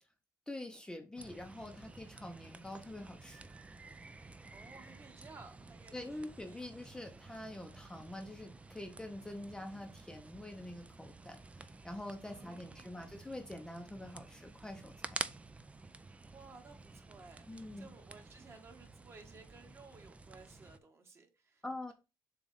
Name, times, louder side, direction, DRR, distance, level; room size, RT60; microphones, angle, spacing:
voice 1, 0.5-3.5 5.9-15.2 17.5-17.9 21.6-21.9, left 1 dB, 10° left, 0.7 m, -46 dB
sound 1, 1.2-20.8, right 3 dB, 15° right, 0.4 m, -51 dB
voice 2, 4.5-6.7 12.2-13.1 16.0-21.6, right 4 dB, 30° right, 1.4 m, -57 dB
7.1 x 2.4 x 5.4 m
cardioid pair, 115°, 8 cm